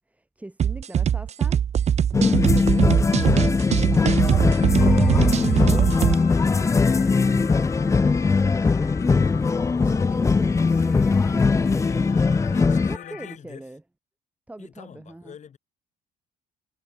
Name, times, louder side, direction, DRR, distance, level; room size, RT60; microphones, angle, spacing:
voice 1, 0.1-2.9 3.2-4.2 4.5-5.1 5.5-9.5 9.8-12.1 12.9-13.8 14.5-15.3, right 1 dB, 10° right, 2.6 m, -41 dB
sound 1, 0.6-6.1, right 9 dB, 40° right, 0.8 m, -21 dB
sound 2, 2.1-13.0, left 4 dB, 20° left, 0.5 m, -20 dB
sound 3, 4.3-13.4, left 12 dB, 60° left, 7.4 m, -42 dB
voice 2, 11.7-12.1 12.4-13.7 14.6-15.6, left 8 dB, 45° left, 7.5 m, -45 dB
cardioid pair, 110°, 17 cm